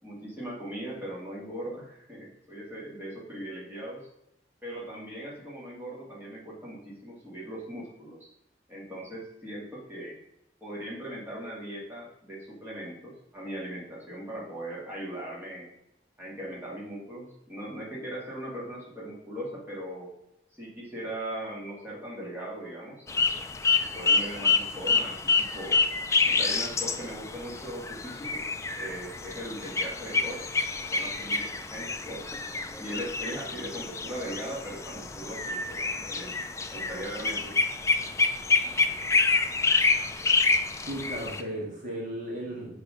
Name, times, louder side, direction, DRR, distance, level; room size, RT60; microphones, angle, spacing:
voice 1, 0.0-4.1 4.6-8.3 8.7-10.2 10.6-15.7 16.2-20.1 20.5-23.3 23.9-25.8 26.2-28.5 28.8-30.5 30.8-32.4 32.8-36.3 36.7-37.5, right 1 dB, 10° right, -6 dB, 2.2 m, -39 dB
sound 1, 23.1-41.4, left 4 dB, 15° left, 0.4 m, -27 dB
voice 2, 40.8-42.8, right 1 dB, 45° right, -3 dB, 2.0 m, -35 dB
6.7 x 4.8 x 5.1 m, 0.82 s
head